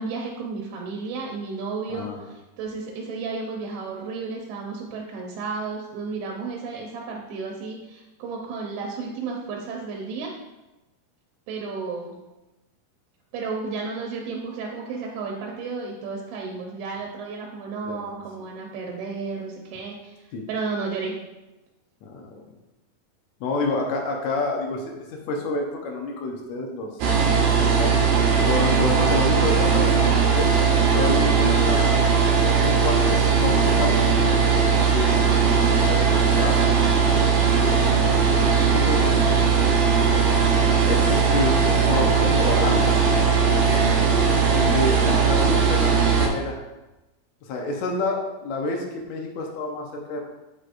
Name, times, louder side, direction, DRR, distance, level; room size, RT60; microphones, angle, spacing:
voice 1, 0.0-10.3 11.5-12.2 13.3-21.2, right 4 dB, 90° right, 0 dB, 2.8 m, -33 dB
voice 2, 1.9-2.3 17.8-18.1 20.3-20.5 22.0-22.4 23.4-26.9 27.3-28.1 28.5-30.5 30.9-32.2 32.6-34.4 34.9-36.6 36.8-37.8 38.7-39.7 40.8-43.0 44.5-46.6 47.4-50.2, left 2 dB, 85° left, 0 dB, 1.6 m, -29 dB
sound 1, 27.0-46.3, right 6 dB, 75° right, 1.8 m, -19 dB
8.6 x 5.0 x 2.6 m, 1.0 s
omnidirectional pair, 4.5 m